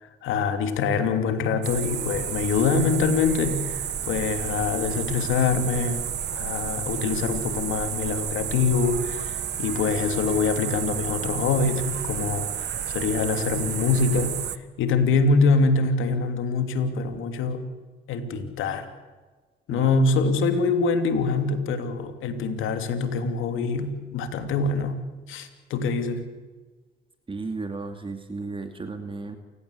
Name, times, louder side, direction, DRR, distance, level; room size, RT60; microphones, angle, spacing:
voice 1, 0.0-3.8 4.1-6.0 6.3-14.4 14.8-17.7 18.1-18.9 19.7-26.3, left 4 dB, 85° left, 8 dB, 3.0 m, -24 dB
sound 1, 1.6-14.6, right 9 dB, 55° right, 1.4 m, -31 dB
voice 2, 27.3-29.4, right 3 dB, 25° right, 7 dB, 2.4 m, -34 dB
29.0 x 17.0 x 8.4 m, 1.3 s
cardioid pair, 90°, 20 cm